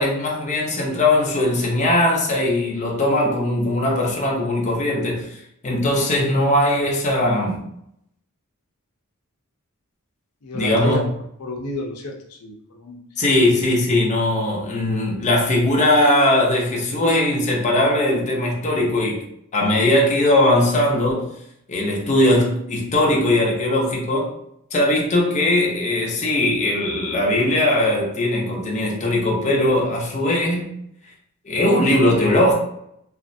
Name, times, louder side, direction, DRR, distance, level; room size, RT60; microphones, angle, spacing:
voice 1, 0.0-5.3 5.6-7.6 10.5-11.0 13.2-19.3 19.5-21.3 21.7-24.3 24.7-30.8 31.4-32.5, left 1 dB, 30° left, 0.6 m, -19 dB
voice 2, 10.4-11.0 11.4-13.0, left 1 dB, 90° left, 0.6 m, -30 dB
3.0 x 2.4 x 2.6 m
head